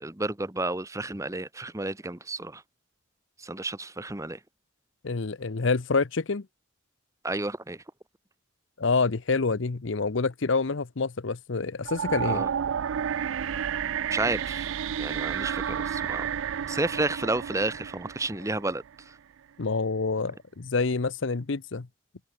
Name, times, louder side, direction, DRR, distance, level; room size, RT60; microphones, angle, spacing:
voice 1, 0.0-2.6 3.4-4.4 7.2-7.8 12.2-12.5 14.1-14.7 15.0-16.3 16.7-19.2, right 2 dB, 15° right, 1.1 m, -31 dB
voice 2, 5.0-6.5 8.8-12.4 19.6-21.9, left 4 dB, 65° left, 0.8 m, -27 dB
sound 1, 11.8-18.9, right 8 dB, 70° right, 0.4 m, -31 dB
head